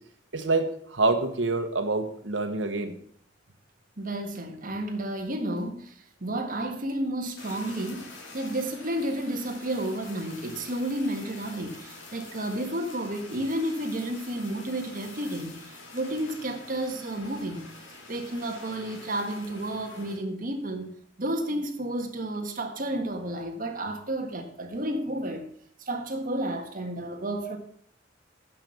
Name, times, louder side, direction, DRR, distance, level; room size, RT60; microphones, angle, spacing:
voice 1, 0.3-2.9, right 3 dB, 85° right, 1.2 m, -26 dB
voice 2, 4.0-5.9 6.2-17.7 18.1-20.9 21.2-25.4 25.8-27.6, right 1 dB, 50° right, 1.6 m, -31 dB
Fire, 7.4-20.2, left 3 dB, 80° left, 2.6 m, -46 dB
9.7 x 6.0 x 6.9 m
head